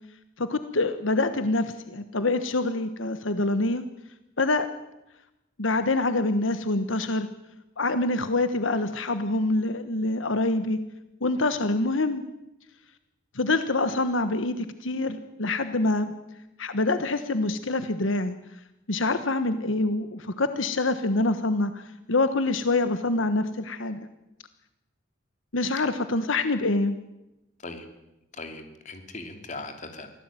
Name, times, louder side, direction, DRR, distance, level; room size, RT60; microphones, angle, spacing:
voice 1, 0.4-3.8 4.4-4.7 5.6-7.3 7.8-10.8 11.2-12.2 13.3-16.1 16.6-18.3 18.9-24.0 25.5-27.0, left 2 dB, 80° left, 10 dB, 1.3 m, -25 dB
voice 2, 28.3-30.1, left 3 dB, 40° left, 6 dB, 3.0 m, -39 dB
24.0 x 16.5 x 9.1 m, 0.94 s
head